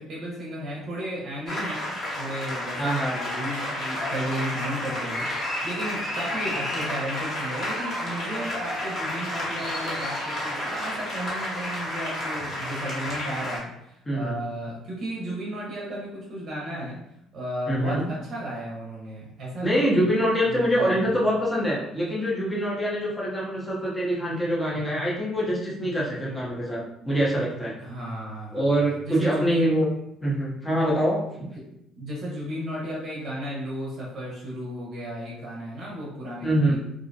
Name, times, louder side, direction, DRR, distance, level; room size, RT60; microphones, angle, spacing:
voice 1, 0.0-1.9 2.2-17.0 17.3-20.1 20.5-21.2 27.8-28.7 29.0-29.7 31.9-36.8, equal, 50° right, -4 dB, 0.7 m, -34 dB
sound 1, 1.5-13.6, left 1 dB, 40° left, 0.9 m, -31 dB
voice 2, 2.8-3.2 14.1-14.4 17.7-18.1 19.6-27.7 28.5-29.9 30.2-31.5 36.4-36.8, equal, 15° left, -5 dB, 0.7 m, -24 dB
2.5 x 2.1 x 2.6 m, 0.80 s
cardioid pair, 135°, 0 cm